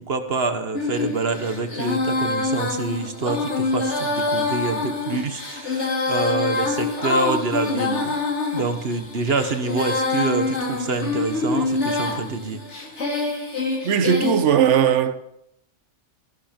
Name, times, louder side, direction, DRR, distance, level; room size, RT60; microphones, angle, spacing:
voice 1, 0.0-8.2 8.5-12.6, right 4 dB, 55° right, 1.4 m, -26 dB
Female singing, 0.7-14.4, left 3 dB, 70° left, 2.9 m, -25 dB
voice 2, 13.8-15.2, right 8 dB, 80° right, 1.2 m, -18 dB
15.0 x 11.5 x 5.2 m
omnidirectional pair, 1.2 m